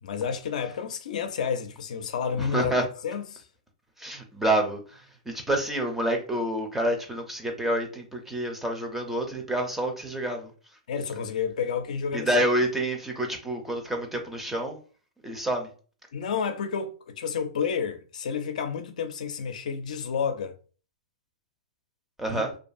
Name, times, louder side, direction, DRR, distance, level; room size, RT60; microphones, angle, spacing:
voice 1, 0.0-2.7 3.0-3.4 10.9-12.3 16.1-20.6 22.3-22.4, left 6 dB, 70° left, 0.4 m, -30 dB
voice 2, 2.4-2.8 4.0-10.5 12.1-14.8 15.2-15.7 22.2-22.5, right 1 dB, 5° right, 0.5 m, -28 dB
2.5 x 2.3 x 2.5 m
hypercardioid pair, 130°, 4 cm